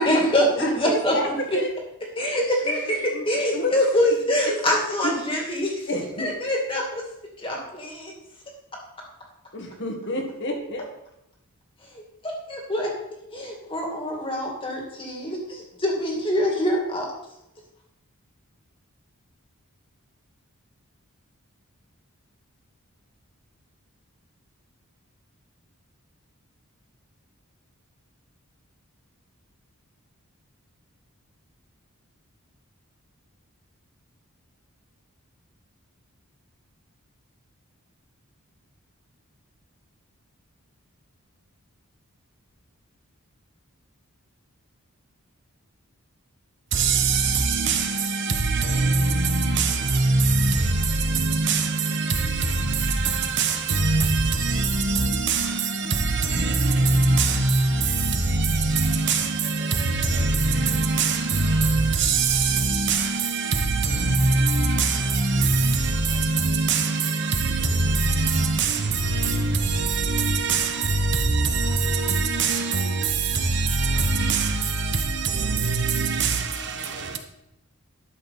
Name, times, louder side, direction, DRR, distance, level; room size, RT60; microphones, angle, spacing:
voice 1, 0.0-1.6 2.2-5.9 6.2-7.0 7.4-8.1 12.2-12.9 13.3-17.1, equal, 25° left, 2.3 m, -24 dB
voice 2, 0.6-1.3 1.5-1.7 2.6-4.2 4.5-4.6 5.0-5.1 5.9-6.3 9.5-10.8, left 1 dB, 55° left, 1.8 m, -30 dB
voice 3, 46.7-77.2, right 3 dB, 55° right, 1.0 m, -23 dB
11.5 x 7.0 x 4.2 m
head